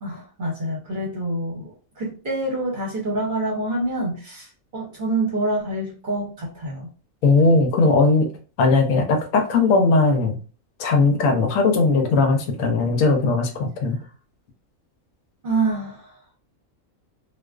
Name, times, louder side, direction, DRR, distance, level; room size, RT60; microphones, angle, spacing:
voice 1, 0.0-6.9 15.4-16.1, right 2 dB, 45° right, -3 dB, 0.8 m, -26 dB
voice 2, 7.2-8.3 8.6-10.4 10.8-14.0, left 3 dB, 75° left, 3 dB, 1.0 m, -18 dB
2.4 x 2.3 x 2.2 m, 0.36 s
omnidirectional pair, 1.4 m